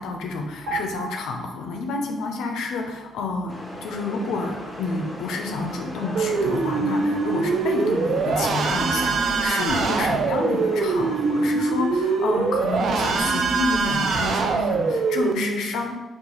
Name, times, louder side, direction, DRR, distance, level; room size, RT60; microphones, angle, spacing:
voice 1, 0.0-15.9, left 3 dB, 85° left, 3 dB, 0.4 m, -29 dB
sound 1, 0.7-2.3 2.6-2.8, right 4 dB, 85° right, 1.2 m, -36 dB
sound 2, 3.5-11.5, equal, 5° left, 0.8 m, -38 dB
sound 3, 6.2-15.3, right 4 dB, 60° right, 0.3 m, -23 dB
3.7 x 2.3 x 3.0 m, 1.2 s
cardioid pair, 90°, 0 cm